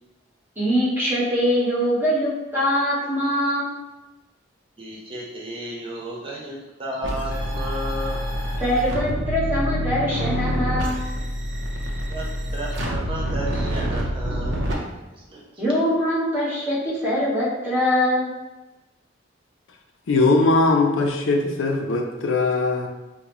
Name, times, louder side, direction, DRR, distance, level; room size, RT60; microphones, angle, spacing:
voice 1, 0.6-3.7 8.6-11.0 15.6-18.3, equal, 10° right, -8 dB, 1.2 m, -23 dB
voice 2, 4.8-8.3 12.1-14.7 15.1-15.4, right 1 dB, 30° right, -3 dB, 0.6 m, -33 dB
sound 1, 7.0-14.7, equal, 65° right, 0.7 m, -27 dB
voice 3, 20.1-22.9, left 3 dB, 80° left, 3 dB, 0.5 m, -20 dB
4.7 x 2.2 x 2.9 m, 1.1 s
head